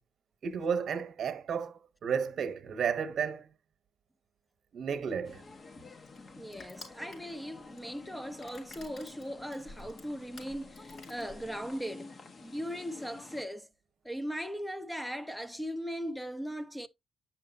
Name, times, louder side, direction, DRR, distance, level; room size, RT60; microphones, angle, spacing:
voice 1, 0.4-3.5 4.7-5.4, right 7 dB, 60° right, 1.0 m, -32 dB
Crushing, 5.0-11.8, left 2 dB, 60° left, 4.9 m, -53 dB
sound 1, 5.2-13.4, left 3 dB, 40° left, 1.0 m, -50 dB
voice 2, 6.4-12.1 12.4-13.7 14.0-16.9, equal, 5° left, 0.6 m, -39 dB
8.8 x 6.0 x 2.7 m
cardioid pair, 90°, 0 cm